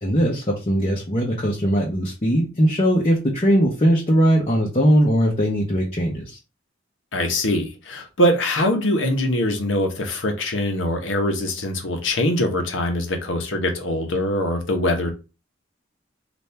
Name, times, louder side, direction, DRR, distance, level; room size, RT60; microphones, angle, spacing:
voice 1, 0.0-6.4, equal, 35° left, 0.8 m, -20 dB
voice 2, 7.1-15.1, left 1 dB, 85° left, 1.0 m, -23 dB
4.2 x 2.6 x 3.4 m
head